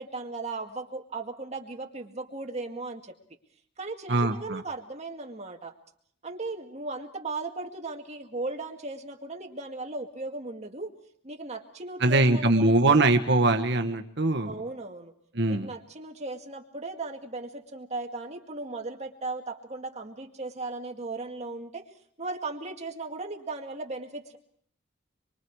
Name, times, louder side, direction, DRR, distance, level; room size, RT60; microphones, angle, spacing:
voice 1, 0.0-3.2 3.8-5.7 6.2-10.9 11.2-13.0 14.4-15.1 15.5-21.9 22.2-24.4, right 3 dB, 35° right, 3 dB, 2.0 m, -37 dB
voice 2, 4.1-4.6 12.0-14.6 15.3-15.7, right 2 dB, 60° right, 6 dB, 1.4 m, -22 dB
26.5 x 23.5 x 4.8 m, 0.62 s
head